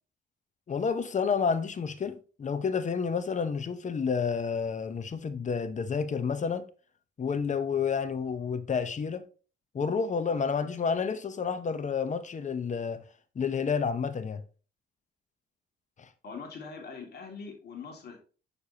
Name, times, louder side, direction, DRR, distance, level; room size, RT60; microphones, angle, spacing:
voice 1, 0.7-6.7 7.2-9.2 9.7-13.0 13.3-14.4 16.0-16.1, left 6 dB, 40° left, 0.9 m, -30 dB
voice 2, 16.2-18.2, left 5 dB, 55° left, 2.3 m, -42 dB
6.7 x 6.7 x 2.8 m
cardioid pair, 90°, 20 cm